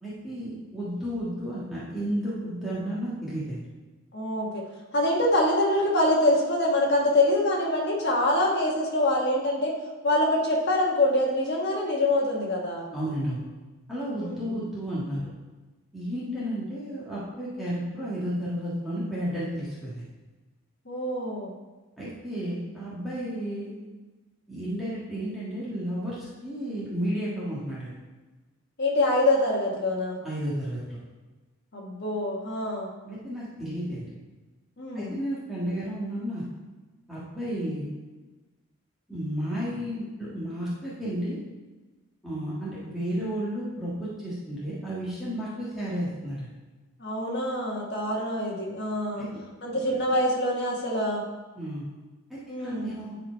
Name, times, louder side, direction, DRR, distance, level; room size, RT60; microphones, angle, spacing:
voice 1, 0.0-3.6 12.9-13.4 13.9-15.3 15.9-20.0 22.0-23.7 24.5-27.9 30.2-31.0 33.0-34.1 34.9-36.4 37.1-37.9 39.1-41.4 42.2-46.5 49.1-49.3 51.5-51.8 52.3-53.2, equal, ahead, -10 dB, 1.5 m, -32 dB
voice 2, 4.1-4.6 4.9-9.8 10.0-12.9 14.1-14.5 20.8-21.5 28.8-30.2 31.7-32.9 34.8-35.1 47.0-49.2 49.6-51.3 52.5-52.9, left 1 dB, 50° left, -2 dB, 1.5 m, -25 dB
9.9 x 4.4 x 4.5 m, 1.2 s
head